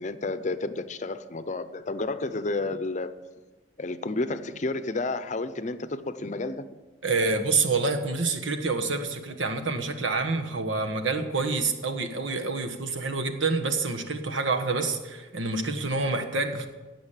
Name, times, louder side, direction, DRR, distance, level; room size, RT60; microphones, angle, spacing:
voice 1, 0.0-3.1 3.8-6.7, left 2 dB, 40° left, 0.6 m, -31 dB
voice 2, 7.0-16.7, right 3 dB, 90° right, 1.4 m, -27 dB
16.5 x 6.2 x 7.4 m
head